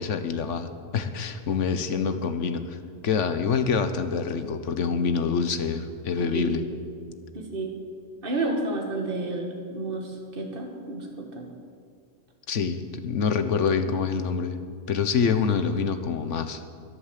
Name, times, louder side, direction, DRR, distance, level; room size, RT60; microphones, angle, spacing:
voice 1, 0.0-2.8 3.0-6.6 12.5-14.5 14.9-16.6, left 6 dB, 80° left, 9 dB, 1.3 m, -26 dB
voice 2, 7.3-7.7 8.2-11.5, right 2 dB, 50° right, 2 dB, 2.1 m, -31 dB
23.0 x 8.3 x 7.5 m, 2.2 s
omnidirectional pair, 1.2 m